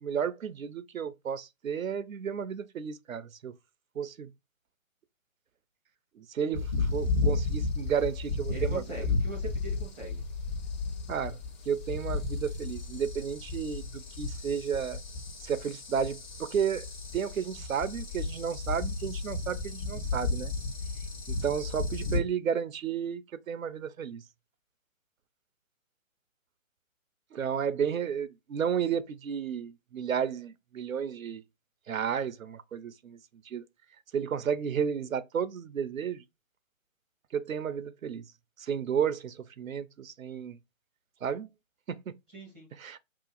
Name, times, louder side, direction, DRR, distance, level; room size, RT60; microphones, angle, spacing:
voice 1, 0.0-3.5 4.0-4.3 6.2-8.8 11.1-15.0 15.4-16.9 17.1-20.5 21.3-24.2 27.3-31.4 31.9-33.2 33.5-33.6 34.1-36.2 37.3-38.3 38.6-40.6 41.2-41.5 41.9-42.0 42.8-43.0, right 7 dB, 80° right, 0.5 m, -32 dB
sound 1, 6.5-22.2, left 3 dB, 35° left, 0.9 m, -33 dB
voice 2, 8.5-10.2 42.3-42.7, right 2 dB, 5° left, 0.6 m, -41 dB
2.8 x 2.4 x 3.8 m
figure-of-eight pair, 140°, 40 cm